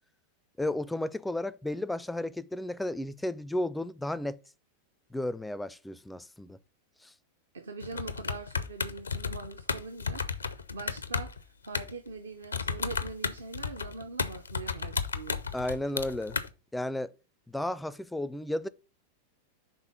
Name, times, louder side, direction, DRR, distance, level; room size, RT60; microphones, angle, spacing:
voice 1, 0.6-4.4 5.1-6.6 7.0-7.1 15.5-16.4 16.7-17.1 17.5-18.7, left 1 dB, 5° left, 0.4 m, -33 dB
voice 2, 7.5-15.4, right 3 dB, 70° right, 0.7 m, -42 dB
sound 1, 7.8-12.1 12.4-16.5, left 5 dB, 75° left, 0.5 m, -33 dB
5.5 x 3.9 x 5.8 m
figure-of-eight pair, 90°, 0 cm